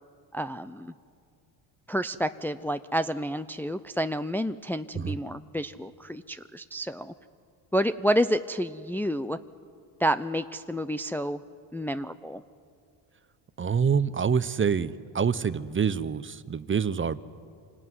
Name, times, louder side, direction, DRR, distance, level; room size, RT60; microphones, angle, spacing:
voice 1, 0.3-0.9 1.9-7.1 7.7-9.4 10.0-11.4 11.7-12.4, equal, 5° left, 10 dB, 0.6 m, -29 dB
voice 2, 13.6-17.2, right 6 dB, 25° right, 15 dB, 0.8 m, -26 dB
26.5 x 18.5 x 9.5 m, 2.3 s
supercardioid pair, 80°, 48 cm